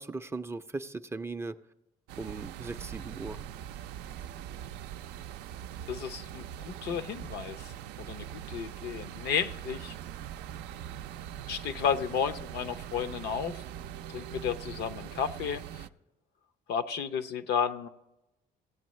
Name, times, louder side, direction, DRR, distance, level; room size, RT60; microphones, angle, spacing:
voice 1, 0.0-1.6 2.2-3.4, right 3 dB, 15° right, 9 dB, 0.4 m, -38 dB
sound 1, 2.1-15.9, right 10 dB, 85° right, 0.4 m, -42 dB
voice 2, 5.9-7.7 8.0-10.0 11.5-13.6 14.1-15.9 16.7-17.9, left 7 dB, 75° left, 11 dB, 0.6 m, -33 dB
16.5 x 8.5 x 3.1 m, 0.95 s
cardioid pair, 110°, 17 cm